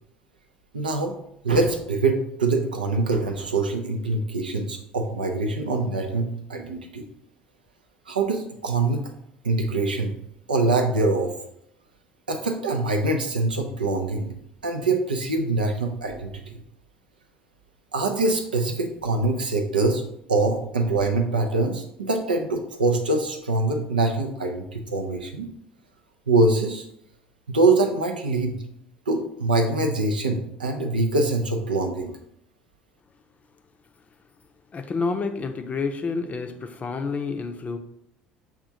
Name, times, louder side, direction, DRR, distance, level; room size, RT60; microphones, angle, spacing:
voice 1, 0.7-1.1 1.4-7.0 8.1-9.0 9.4-10.1 10.5-11.3 12.3-14.3 14.6-16.6 17.9-20.0 20.3-25.5 26.3-26.9 27.5-28.6 29.1-32.1, right 2 dB, 85° right, 4 dB, 0.5 m, -24 dB
voice 2, 34.7-37.8, left 4 dB, 30° left, 6 dB, 0.5 m, -29 dB
6.5 x 2.4 x 2.8 m, 0.74 s
figure-of-eight pair, 60°, 5 cm